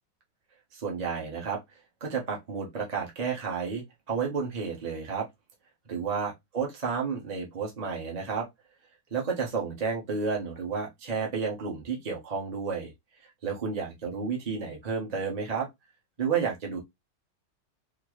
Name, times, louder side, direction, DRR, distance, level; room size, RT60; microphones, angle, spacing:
voice 1, 0.7-1.6 2.0-5.3 5.9-8.5 9.1-12.9 13.4-15.7 16.2-16.8, right 5 dB, 35° right, 0.7 m, -31 dB
3.8 x 2.1 x 3.0 m
omnidirectional pair, 1.9 m